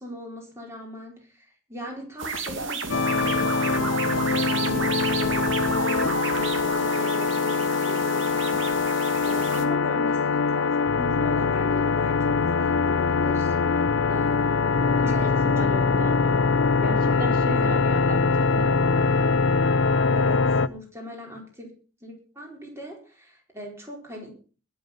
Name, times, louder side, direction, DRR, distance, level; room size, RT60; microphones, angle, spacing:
voice 1, 0.0-5.6 6.0-15.4 17.5-17.7 20.1-21.7 22.0-24.3, left 1 dB, 15° right, 0 dB, 4.4 m, -40 dB
sound 1, 2.2-9.6, right 4 dB, 75° right, 2.6 m, -31 dB
sound 2, 2.9-20.7, left 4 dB, 75° left, 0.6 m, -23 dB
voice 2, 15.4-18.8, right 1 dB, 45° right, 7 dB, 1.1 m, -35 dB
21.5 x 7.2 x 5.4 m, 0.38 s
head